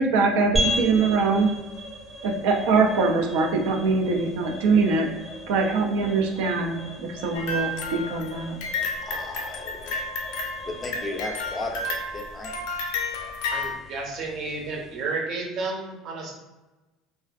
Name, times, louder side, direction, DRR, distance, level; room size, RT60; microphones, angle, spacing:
voice 1, 0.0-1.5 2.2-5.1 5.5-8.6, right 4 dB, 85° right, 2 dB, 0.4 m, -23 dB
sound 1, 0.5-15.2, equal, 10° right, 0.7 m, -36 dB
sound 2, 7.3-13.8, left 2 dB, 80° left, 0.4 m, -31 dB
voice 2, 9.0-10.0 10.6-12.6 13.1-13.3, left 2 dB, 20° left, 1 dB, 0.4 m, -35 dB
voice 3, 13.5-16.3, right 3 dB, 50° right, 0 dB, 0.7 m, -31 dB
2.4 x 2.3 x 2.4 m, 1.1 s
cardioid pair, 135°, 0 cm